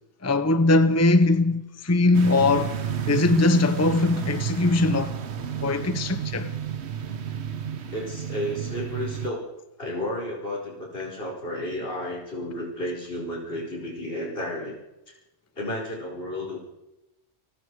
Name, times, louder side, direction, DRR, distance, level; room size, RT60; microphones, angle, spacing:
voice 1, 0.2-2.8 3.1-5.2 5.6-6.5, left 2 dB, 15° left, 0.8 m, -21 dB
sound 1, 2.1-9.3, right 8 dB, 80° right, 1.4 m, -31 dB
voice 2, 7.9-9.5 9.8-14.8 15.6-16.6, left 1 dB, 60° left, 5.2 m, -32 dB
29.0 x 21.5 x 4.9 m
omnidirectional pair, 1.1 m